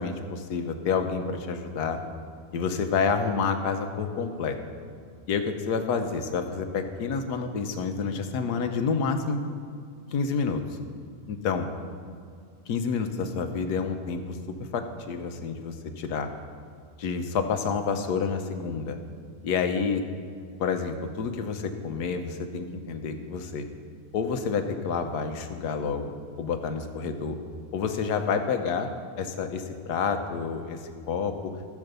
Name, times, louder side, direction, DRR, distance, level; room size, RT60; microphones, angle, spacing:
voice 1, 0.0-2.0 2.5-4.6 5.3-9.4 10.1-10.6 11.3-11.7 12.7-16.3 17.0-19.0 19.4-20.0 20.6-23.7 24.1-27.4 27.7-28.9 29.2-31.5, left 5 dB, 90° left, 7 dB, 1.4 m, -29 dB
14.5 x 6.0 x 6.7 m, 2.3 s
omnidirectional pair, 1.7 m